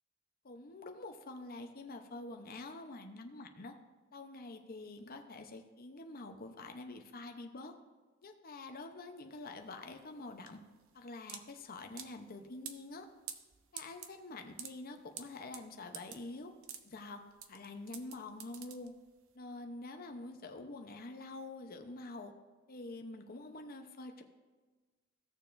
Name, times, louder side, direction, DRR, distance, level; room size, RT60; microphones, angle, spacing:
voice 1, 0.4-3.7 4.1-7.7 8.2-10.6 10.9-13.1 13.7-16.5 16.8-17.2 17.5-18.9 19.3-22.3 22.7-24.2, left 2 dB, 45° left, 5 dB, 0.8 m, -46 dB
sound 1, 9.4-19.3, right 8 dB, 90° right, 0.7 m, -50 dB
16.0 x 6.8 x 2.6 m, 1.3 s
head